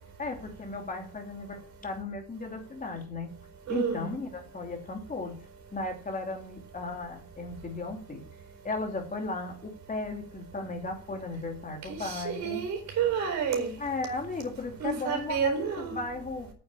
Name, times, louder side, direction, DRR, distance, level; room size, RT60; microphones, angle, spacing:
voice 1, 0.2-3.3 3.7-5.5 5.7-8.2 8.6-12.6 13.8-16.5, left 3 dB, 25° left, 2.9 m, -36 dB
voice 2, 3.7-4.1 11.9-13.7 14.8-16.0, right 6 dB, 60° right, 4.6 m, -29 dB
9.2 x 7.1 x 8.6 m
supercardioid pair, 95°, 32 cm